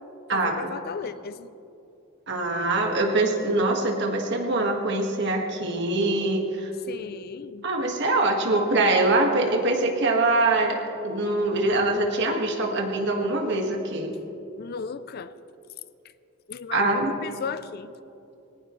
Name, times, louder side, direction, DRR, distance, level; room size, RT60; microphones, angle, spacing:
voice 1, 0.3-1.5 6.9-7.6 14.6-15.3 16.5-17.9, left 5 dB, 45° left, 14 dB, 0.4 m, -36 dB
voice 2, 2.3-6.7 7.6-14.1 16.7-17.1, right 2 dB, 55° right, 2 dB, 1.8 m, -23 dB
19.5 x 18.5 x 3.2 m, 2.8 s
head